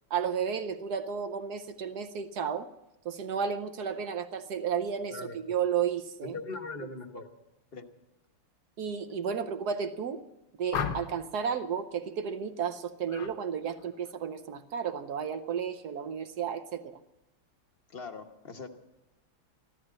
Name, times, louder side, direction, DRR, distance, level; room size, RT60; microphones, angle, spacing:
voice 1, 0.1-2.7 3.0-6.3 8.8-10.2 10.6-17.0, right 7 dB, 65° right, 9 dB, 1.0 m, -33 dB
voice 2, 5.1-5.5 6.2-7.3 7.7-7.9 17.9-18.7, left 3 dB, 35° left, 6 dB, 1.0 m, -41 dB
sound 1, 10.7-11.3 13.1-13.4 13.7-14.1, left 7 dB, 60° left, 1.6 m, -35 dB
15.0 x 13.0 x 7.5 m, 0.96 s
omnidirectional pair, 2.4 m